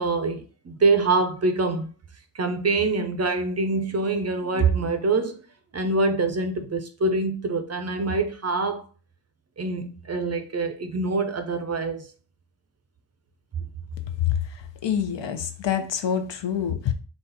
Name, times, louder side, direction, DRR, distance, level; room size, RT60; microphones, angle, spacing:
voice 1, 0.0-1.9 2.3-5.4 5.7-8.8 9.6-12.1, right 3 dB, 35° right, 0.5 m, -25 dB
voice 2, 14.8-16.9, left 9 dB, 75° left, 0.7 m, -26 dB
3.9 x 2.4 x 3.9 m
wide cardioid pair, 130°, 44 cm